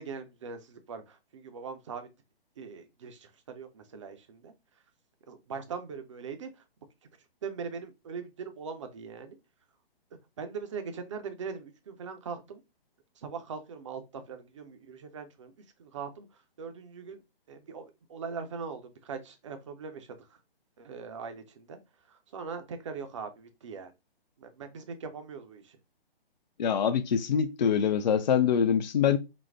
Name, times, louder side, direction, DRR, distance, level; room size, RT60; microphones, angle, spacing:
voice 1, 0.0-2.1 2.6-4.5 5.3-6.5 7.4-9.4 10.4-12.6 13.2-15.5 15.8-16.3 16.6-17.2 17.5-17.8 18.1-20.1 20.8-21.8 22.1-23.9 24.4-25.7, right 5 dB, 30° right, 0.5 m, -41 dB
voice 2, 26.6-29.2, left 7 dB, 45° left, 0.4 m, -24 dB
4.0 x 2.0 x 3.3 m
figure-of-eight pair, 130°, 31 cm